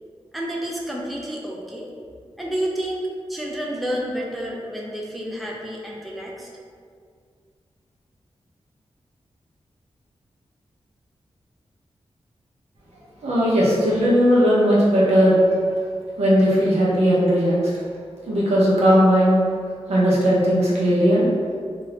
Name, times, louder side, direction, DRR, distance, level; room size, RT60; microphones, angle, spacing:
voice 1, 0.3-1.9 2.4-3.0 3.3-6.5, equal, ahead, -3 dB, 0.4 m, -29 dB
voice 2, 13.2-15.4 16.2-17.6 18.3-19.4 19.9-21.3, equal, 80° right, -6 dB, 0.9 m, -17 dB
2.7 x 2.7 x 3.1 m, 2.1 s
wide cardioid pair, 110°, 11 cm